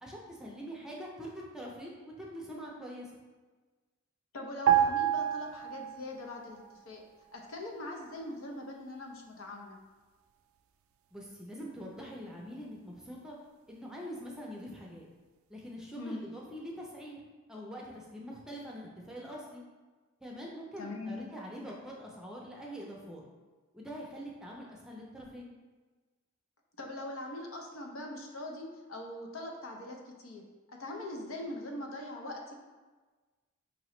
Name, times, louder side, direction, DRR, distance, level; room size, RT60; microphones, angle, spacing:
voice 1, 0.0-3.1 11.1-13.4 13.7-15.1 15.5-17.2 17.5-19.6 20.2-23.2 23.7-25.5, equal, 5° right, -3 dB, 0.5 m, -44 dB
voice 2, 4.3-7.0 7.3-9.8 16.0-16.2 20.8-21.2 26.8-30.4 30.7-32.5, left 1 dB, 80° left, 1 dB, 0.7 m, -42 dB
sound 1, 4.7-6.3 6.6-6.8, right 10 dB, 85° right, 0.3 m, -28 dB
4.8 x 3.0 x 3.1 m, 1.3 s
head